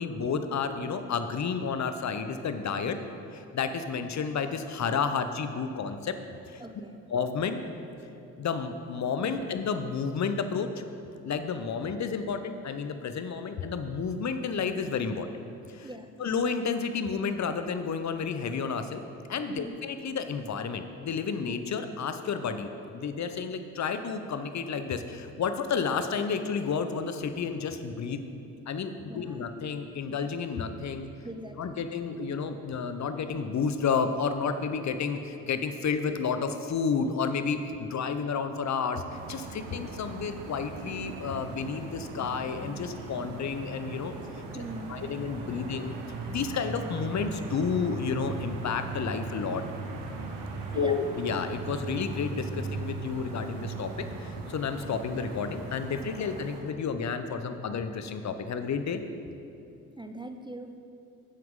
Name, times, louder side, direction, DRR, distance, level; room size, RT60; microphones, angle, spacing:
voice 1, 0.0-3.0 3.3-6.2 6.5-6.6 7.1-7.6 8.4-10.7 11.2-15.3 15.7-15.9 16.2-19.0 19.3-22.7 22.9-28.2 28.7-31.1 31.6-44.1 44.5-44.6 44.9-45.9 46.3-49.6 50.7-59.0, left 5 dB, 40° left, 9 dB, 0.8 m, -31 dB
voice 2, 6.6-7.0 15.8-16.1 19.5-19.8 29.1-29.4 31.2-31.9 44.5-45.0 50.7-50.9 60.0-60.8, right 1 dB, 10° right, 6 dB, 0.5 m, -41 dB
sound 1, 39.1-56.6, right 3 dB, 70° right, 1.2 m, -38 dB
10.5 x 7.7 x 3.7 m, 2.7 s
hypercardioid pair, 50°, 44 cm